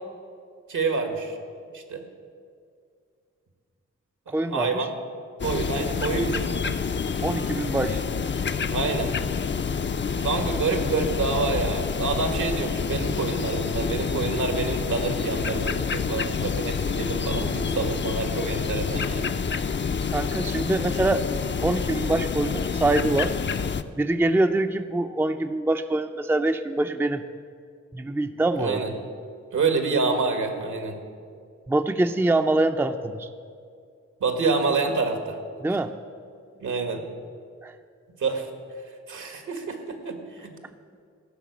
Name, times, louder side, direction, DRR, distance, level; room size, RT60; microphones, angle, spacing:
voice 1, 0.7-1.4 1.7-2.0 4.3-4.9 5.4-6.8 8.7-9.2 10.2-19.3 28.6-28.9 29.5-31.0 34.2-35.4 36.6-37.0 38.2-38.5 39.1-40.5, right 4 dB, 75° right, 6 dB, 1.7 m, -27 dB
voice 2, 4.3-4.9 7.2-8.0 20.1-21.2 21.6-23.3 24.0-27.2 27.9-28.8 31.7-33.3 35.6-35.9 37.6-37.7, right 2 dB, 5° right, 8 dB, 0.5 m, -24 dB
sound 1, 5.4-23.8, left 6 dB, 35° left, 0.6 m, -28 dB
15.5 x 5.8 x 8.3 m, 2.2 s
cardioid pair, 50°, 31 cm